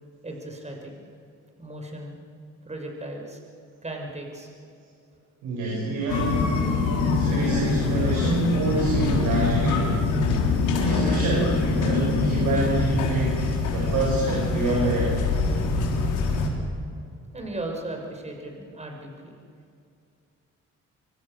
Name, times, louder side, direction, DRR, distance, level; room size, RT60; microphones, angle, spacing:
voice 1, 0.2-1.0 1.6-2.2 2.6-3.4 3.8-4.5 17.3-19.4, right 1 dB, 20° right, 2 dB, 5.9 m, -36 dB
voice 2, 5.4-6.4 7.1-10.0 10.8-15.1, right 2 dB, 90° right, -4 dB, 7.4 m, -27 dB
sound 1, 6.1-16.5, left 3 dB, 85° left, 3.9 m, -24 dB
25.5 x 24.0 x 6.8 m, 2.5 s
cardioid pair, 90°, 30 cm